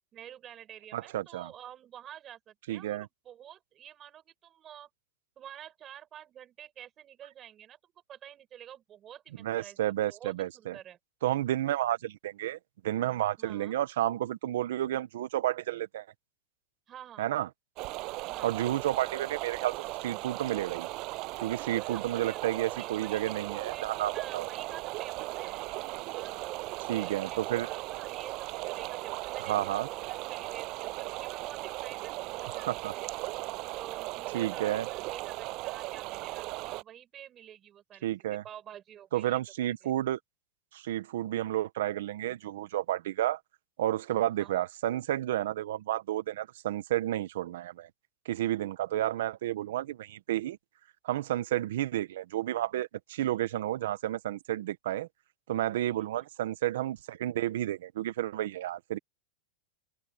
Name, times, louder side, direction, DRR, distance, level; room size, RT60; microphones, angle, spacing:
voice 1, 0.1-4.9 5.4-11.0 13.4-13.8 16.9-17.3 18.3-18.6 21.7-23.2 23.7-25.6 26.1-33.1 33.7-38.1 38.4-39.4 39.8-39.9 44.4-44.7 56.0-56.3, right 10 dB, 30° right, 7.4 m, -49 dB
voice 2, 0.9-1.5 2.7-3.1 9.4-10.7 11.2-12.6 12.8-16.1 17.2-17.5 18.4-20.9 21.4-24.5 26.9-27.7 29.4-29.9 32.5-32.9 34.3-34.9 38.0-38.4 39.1-40.2 40.7-43.4 43.8-47.9 48.2-50.6 51.0-55.1 55.5-59.0, right 13 dB, 80° right, 1.2 m, -31 dB
sound 1, 17.8-36.8, right 22 dB, 45° right, 7.7 m, -37 dB
open air
supercardioid pair, 145°, 0 cm